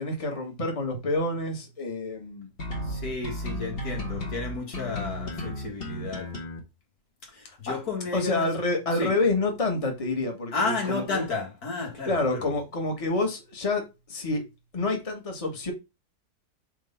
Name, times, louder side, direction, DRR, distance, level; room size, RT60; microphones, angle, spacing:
voice 1, 0.0-2.5 7.7-7.8 8.1-11.2 12.1-13.8 14.1-14.4 14.7-15.7, left 2 dB, 25° left, 1.6 m, -28 dB
sound 1, 2.6-6.6, left 1 dB, 40° left, 1.7 m, -34 dB
voice 2, 2.8-6.3 7.2-8.5 8.9-9.1 10.5-12.5, left 4 dB, 80° left, 2.6 m, -32 dB
4.7 x 4.6 x 5.6 m
omnidirectional pair, 1.6 m